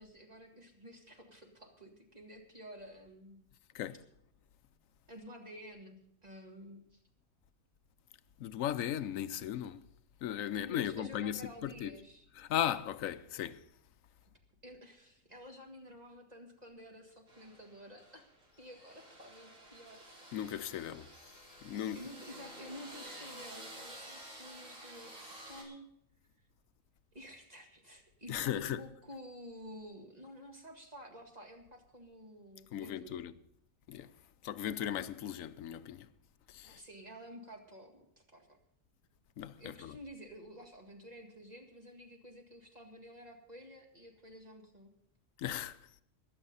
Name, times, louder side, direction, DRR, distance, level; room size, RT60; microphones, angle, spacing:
voice 1, 0.0-3.4 5.1-7.0 10.5-12.3 14.2-14.3 14.6-18.3 18.6-20.0 21.9-25.2 25.5-25.9 27.1-33.2 36.6-38.6 39.6-44.9, equal, 30° right, 2.0 m, -51 dB
voice 2, 8.4-9.8 10.2-11.9 12.4-13.6 20.3-21.1 21.6-22.0 28.3-28.8 32.7-33.3 33.9-34.1 34.4-36.1 36.5-36.8 39.4-40.0 45.4-45.8, left 10 dB, 80° left, 1.1 m, -37 dB
sound 1, 17.3-25.6, right 1 dB, 70° right, 3.7 m, -51 dB
21.5 x 7.4 x 5.5 m
omnidirectional pair, 1.4 m